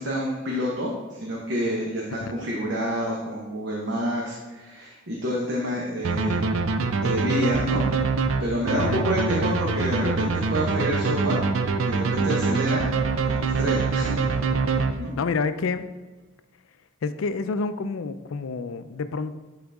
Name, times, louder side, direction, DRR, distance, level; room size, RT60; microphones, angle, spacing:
voice 1, 0.0-6.4 7.0-7.8 8.4-11.4 11.8-12.9 13.2-14.3 15.0-15.1, equal, 65° right, -3 dB, 1.1 m, -28 dB
sound 1, 6.0-15.4, right 4 dB, 80° right, 0.5 m, -24 dB
voice 2, 8.7-9.1 15.2-15.9 17.0-19.4, left 4 dB, 85° left, 12 dB, 0.4 m, -28 dB
11.0 x 4.0 x 3.5 m, 1.2 s
head